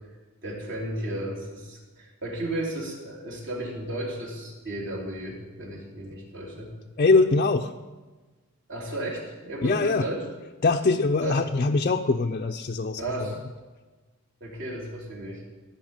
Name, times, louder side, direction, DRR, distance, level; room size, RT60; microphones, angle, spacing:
voice 1, 0.4-6.7 8.7-10.2 11.2-11.4 13.0-13.4 14.4-15.4, right 1 dB, 55° right, -3 dB, 3.5 m, -34 dB
voice 2, 7.0-7.7 9.6-10.1 10.6-13.3, left 3 dB, 40° left, 3 dB, 0.5 m, -23 dB
16.5 x 5.8 x 9.0 m, 1.3 s
head